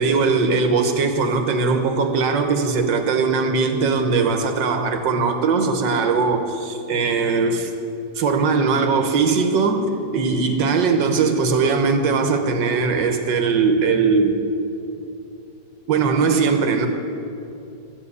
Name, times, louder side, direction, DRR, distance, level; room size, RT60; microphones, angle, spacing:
voice 1, 0.0-7.7 8.2-14.4 15.9-16.9, right 4 dB, 85° right, 6 dB, 1.8 m, -20 dB
14.0 x 7.6 x 9.7 m, 2.8 s
omnidirectional pair, 1.9 m